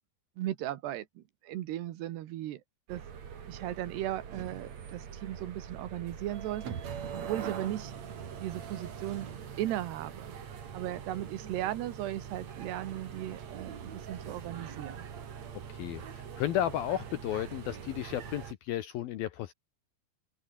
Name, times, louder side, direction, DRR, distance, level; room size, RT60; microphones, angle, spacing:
voice 1, 0.4-2.6 2.9-3.0 3.5-6.7 7.1-7.9 8.4-9.3 9.6-10.3 10.7-15.1, right 13 dB, 65° right, 3.1 m, -37 dB
sound 1, 2.9-18.5, right 7 dB, 45° right, 2.8 m, -43 dB
voice 2, 15.7-19.5, left 12 dB, 80° left, 2.1 m, -33 dB
omnidirectional pair, 5.7 m